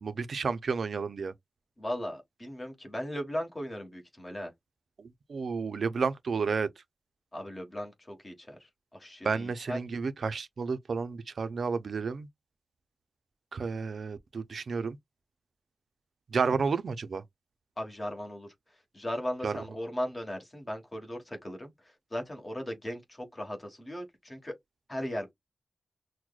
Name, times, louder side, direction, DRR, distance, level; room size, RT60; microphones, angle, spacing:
voice 1, 0.0-1.3 5.3-6.7 9.2-12.3 13.5-15.0 16.3-17.2 19.4-19.6, right 5 dB, 75° right, 0.4 m, -31 dB
voice 2, 1.8-4.5 7.3-9.8 17.8-18.5 18.9-24.5 24.9-25.3, equal, 25° left, 1.3 m, -37 dB
6.0 x 2.1 x 2.3 m
wide cardioid pair, 140°, 0 cm